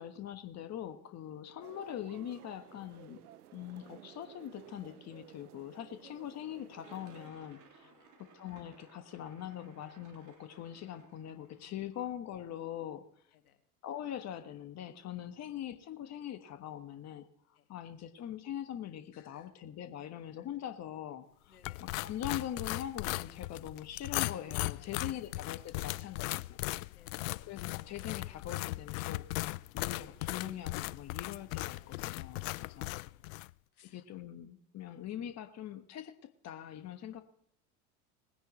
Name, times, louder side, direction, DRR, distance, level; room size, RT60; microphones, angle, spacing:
voice 1, 0.0-3.2 3.5-7.9 8.2-13.1 13.8-26.6 27.4-32.9 33.8-37.2, left 10 dB, 35° left, 9 dB, 1.3 m, -43 dB
sound 1, 1.6-7.3, right 13 dB, 85° right, 0.7 m, -55 dB
sound 2, 6.8-11.8, right 4 dB, 45° right, 3.3 m, -60 dB
voice 2, 7.8-8.1 11.6-12.0 13.3-13.6 15.3-15.4 17.5-17.7 19.1-19.5 20.4-20.5 21.5-21.8 24.8-25.3 26.9-27.3 32.5-33.4 33.7-34.0, left 9 dB, 80° left, 6 dB, 1.9 m, -64 dB
sound 3, 21.6-33.5, left 20 dB, 65° left, 0.5 m, -38 dB
20.5 x 10.0 x 3.1 m, 0.67 s
hypercardioid pair, 80°, 43 cm